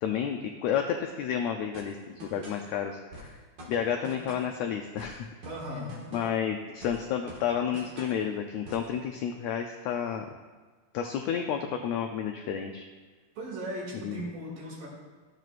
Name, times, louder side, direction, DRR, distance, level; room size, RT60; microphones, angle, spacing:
voice 1, 0.0-3.3 3.7-5.3 6.1-10.3 10.9-12.8 14.0-14.2, left 8 dB, 85° left, 3 dB, 1.5 m, -31 dB
sound 1, 1.7-2.7 3.1-4.6 5.0-6.5 6.8-8.2 8.6-8.9, equal, 45° right, 1.5 m, -46 dB
voice 2, 5.5-5.9 13.4-14.9, equal, 85° right, -4 dB, 3.9 m, -37 dB
13.5 x 7.6 x 2.5 m, 1.4 s
omnidirectional pair, 3.7 m